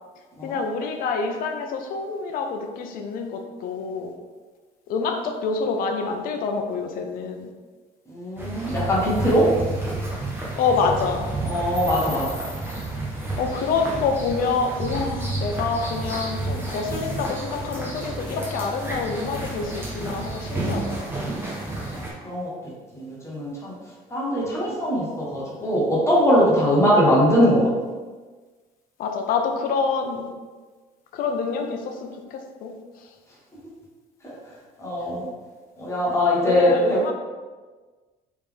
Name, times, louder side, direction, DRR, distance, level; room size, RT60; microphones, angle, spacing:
voice 1, 0.4-4.1 4.9-7.5 10.6-11.3 13.4-21.1 29.0-30.3 31.1-32.8 36.4-37.1, left 4 dB, 65° left, 4 dB, 0.6 m, -27 dB
voice 2, 8.1-9.5 11.4-12.5 21.7-22.5 22.9-23.7 24.1-27.6 34.2-34.3 34.8-35.3 35.8-37.0, equal, 15° left, -6 dB, 1.4 m, -21 dB
sound 1, 8.4-22.1, right 2 dB, 15° right, 1.2 m, -30 dB
4.2 x 3.5 x 3.5 m, 1.4 s
cardioid pair, 135°, 16 cm